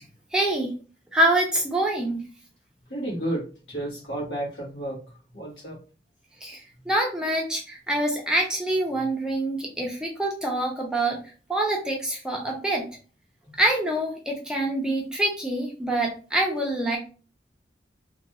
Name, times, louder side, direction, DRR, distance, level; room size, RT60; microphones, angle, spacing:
voice 1, 0.3-0.7 1.1-2.2 6.4-6.6 6.9-11.2 11.5-12.8 13.6-17.0, right 1 dB, 5° right, 0.6 m, -25 dB
voice 2, 2.9-5.8, right 1 dB, 90° left, 1.4 m, -32 dB
3.0 x 2.5 x 2.9 m
head